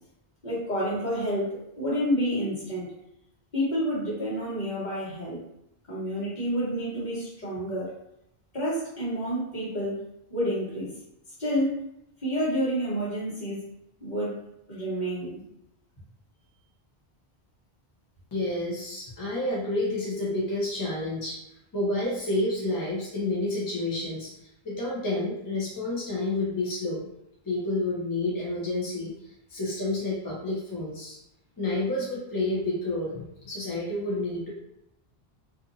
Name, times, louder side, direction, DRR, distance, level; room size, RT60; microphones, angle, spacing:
voice 1, 0.4-2.9 3.5-5.4 5.9-7.9 8.5-10.0 10.3-10.9 11.4-11.8 12.2-13.7 14.0-14.4 14.7-15.4, equal, 45° left, -8 dB, 1.2 m, -29 dB
voice 2, 18.3-21.4 21.7-24.3 24.6-27.0 27.4-31.2 31.6-34.5, left 2 dB, 25° left, -6 dB, 0.6 m, -29 dB
2.6 x 2.5 x 2.6 m, 0.79 s
omnidirectional pair, 1.1 m